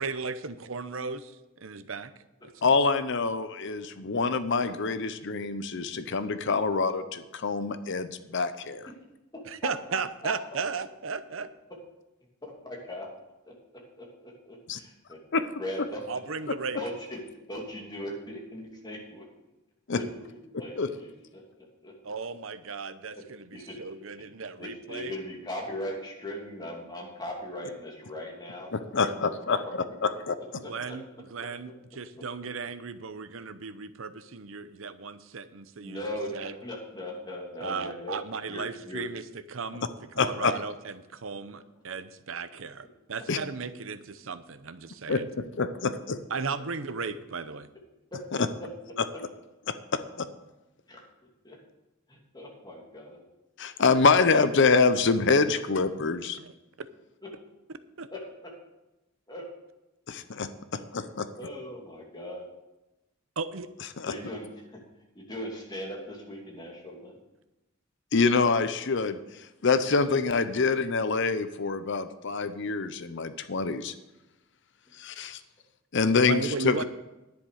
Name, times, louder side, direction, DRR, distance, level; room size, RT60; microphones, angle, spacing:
voice 1, 0.0-1.3 1.6-2.1 2.6-2.7 9.5-11.5 16.1-16.8 22.0-25.1 30.5-31.0 31.3-36.5 37.6-39.2 39.5-45.2 46.3-47.7 56.4-56.5 56.8-56.9 58.0-58.1 63.4-63.7 76.3-76.8, right 4 dB, 70° right, 12 dB, 0.7 m, -36 dB
voice 2, 2.6-8.9 14.7-14.8 15.3-15.5 19.9-20.0 20.8-20.9 28.7-29.6 30.0-30.3 40.2-40.5 43.3-43.4 45.1-45.2 45.6-46.2 49.7-50.3 53.6-56.4 60.1-60.5 60.9-61.3 68.1-69.2 69.6-73.9 75.0-75.4 75.9-76.8, left 4 dB, 60° left, 12 dB, 0.7 m, -25 dB
voice 3, 10.2-10.6 12.4-13.1 13.4-13.5 14.0-14.1 14.5-15.2 15.6-16.0 16.7-17.2 17.5-19.3 19.9-21.9 23.2-23.3 23.5-23.8 24.2-24.3 24.6-29.9 30.6-31.0 31.4-31.7 32.1-32.2 35.8-38.2 38.5-39.1 48.1-48.2 50.9-51.0 51.4-51.6 52.1-53.2 57.2-57.3 58.1-58.2 59.3-59.4 61.4-62.5 64.1-64.8 65.1-67.2, left 1 dB, 20° left, -2 dB, 2.7 m, -39 dB
10.5 x 10.0 x 4.9 m, 0.99 s
head